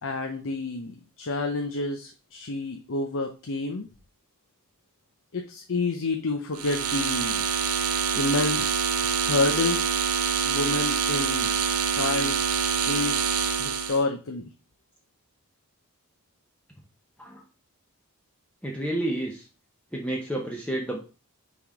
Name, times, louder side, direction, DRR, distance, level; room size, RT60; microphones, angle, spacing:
voice 1, 0.0-3.9 5.3-7.4 8.1-8.9 9.1-10.0 10.5-12.5 12.9-13.3 13.6-14.5, left 3 dB, 60° left, 5 dB, 0.7 m, -29 dB
sound 1, 6.5-14.0, right 6 dB, 75° right, 0.8 m, -26 dB
voice 2, 18.6-19.5 19.9-21.0, right 1 dB, 5° left, 0 dB, 0.7 m, -30 dB
6.0 x 3.6 x 4.7 m, 0.34 s
head